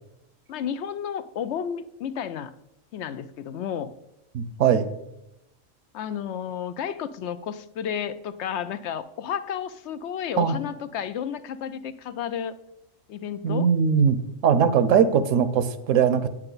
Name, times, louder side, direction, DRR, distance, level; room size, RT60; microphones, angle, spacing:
voice 1, 0.5-2.5 2.9-3.9 5.9-12.6 13.1-13.7, left 8 dB, 65° left, 14 dB, 0.8 m, -32 dB
voice 2, 4.3-4.9 10.4-10.6 13.4-14.2 14.4-16.3, right 7 dB, 75° right, 13 dB, 1.1 m, -20 dB
8.9 x 8.8 x 4.0 m, 0.89 s
omnidirectional pair, 1.4 m